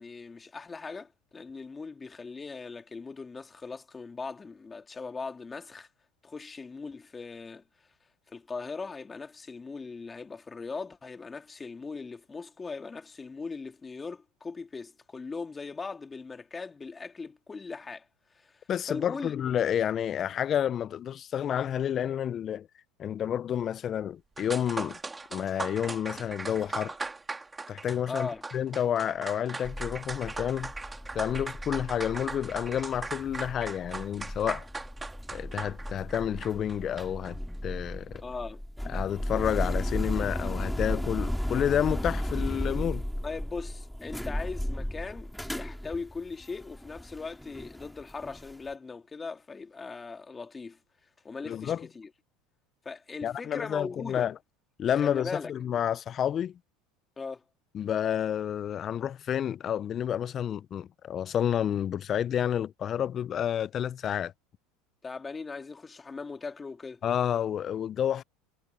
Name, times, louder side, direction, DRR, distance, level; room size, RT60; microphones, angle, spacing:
voice 1, 0.0-5.9 6.2-7.6 8.3-18.1 18.3-19.4 28.1-28.4 38.2-38.6 43.2-50.8 51.2-52.1 52.8-54.3 55.0-55.5 57.2-57.4 65.0-67.0, left 4 dB, 20° left, 2.7 m, -39 dB
voice 2, 18.7-22.7 23.0-25.0 25.3-26.9 27.7-30.7 31.1-34.7 35.3-38.2 38.9-43.0 51.4-51.9 53.2-54.3 54.8-56.6 57.7-64.3 67.0-68.2, left 9 dB, 40° left, 0.4 m, -30 dB
sound 1, 24.1-24.2 24.4-37.3, right 3 dB, 15° right, 3.0 m, -39 dB
sound 2, 29.6-48.5, equal, ahead, 2.6 m, -35 dB
hypercardioid pair, 95°, 0 cm